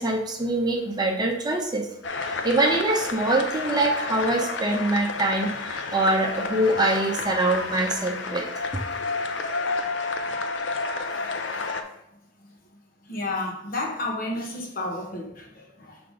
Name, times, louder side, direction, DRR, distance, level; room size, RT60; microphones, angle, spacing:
voice 1, 0.0-1.9 2.4-8.5, right 2 dB, 20° right, 1 dB, 0.7 m, -24 dB
sound 1, 2.0-11.8, left 3 dB, 70° left, 0.6 m, -30 dB
voice 2, 11.1-11.6 12.4-12.5 13.0-16.0, left 2 dB, 50° left, 0 dB, 1.1 m, -32 dB
5.7 x 3.4 x 5.0 m, 0.77 s
head